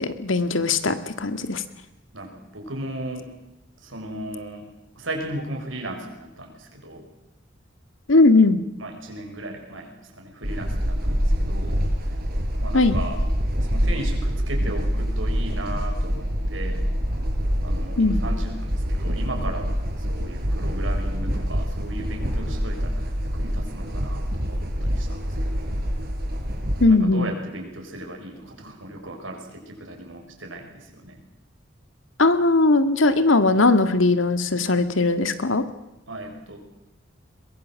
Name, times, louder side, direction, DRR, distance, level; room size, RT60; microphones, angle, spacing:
voice 1, 0.0-1.6 8.1-8.6 12.7-13.0 18.0-18.2 26.8-27.3 32.2-35.6, left 3 dB, 90° left, 10 dB, 1.8 m, -19 dB
voice 2, 2.1-3.3 3.8-4.7 4.9-7.0 8.8-11.8 12.6-13.2 13.6-16.8 17.6-25.8 26.9-31.2 36.1-36.6, right 1 dB, 90° right, 3 dB, 6.0 m, -36 dB
sound 1, 10.4-26.9, equal, 50° right, 4.9 m, -25 dB
22.5 x 21.5 x 7.6 m, 0.91 s
head